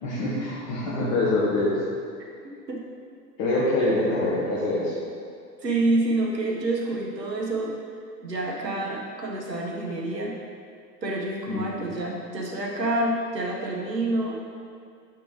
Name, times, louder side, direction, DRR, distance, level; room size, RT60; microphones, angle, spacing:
voice 1, 0.0-1.8 3.4-5.0 11.5-11.9, left 2 dB, 40° left, -9 dB, 1.8 m, -25 dB
voice 2, 5.6-7.7 8.2-10.4 11.0-14.3, right 2 dB, 80° right, -2 dB, 1.6 m, -27 dB
9.0 x 7.0 x 3.2 m, 2.3 s
figure-of-eight pair, 95°, 49 cm